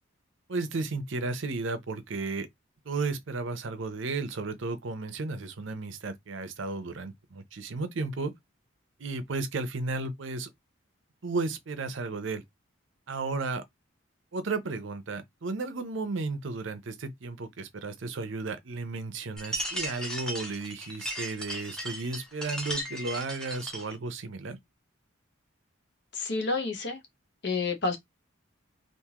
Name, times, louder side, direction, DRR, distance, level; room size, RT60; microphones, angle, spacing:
voice 1, 0.5-2.5 2.9-8.3 9.0-10.5 11.2-12.4 13.1-13.6 14.3-24.6, right 3 dB, 65° right, 0.6 m, -34 dB
sound 1, 19.4-23.9, equal, 5° left, 0.8 m, -36 dB
voice 2, 26.1-27.0 27.4-28.0, left 3 dB, 55° left, 1.0 m, -29 dB
3.6 x 2.6 x 2.8 m
head